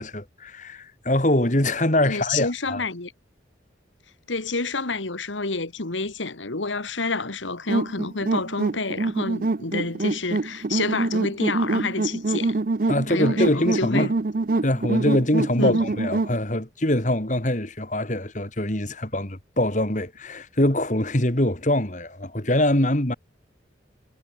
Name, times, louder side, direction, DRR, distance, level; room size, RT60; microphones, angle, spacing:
voice 1, 0.0-2.8 12.9-14.1 14.6-23.1, left 1 dB, 40° left, 2.5 m, -23 dB
voice 2, 2.1-3.1 4.3-12.6 13.1-14.1 15.6-15.8, left 3 dB, 90° left, 2.1 m, -28 dB
sound 1, 7.7-16.4, right 3 dB, 45° right, 0.6 m, -25 dB
head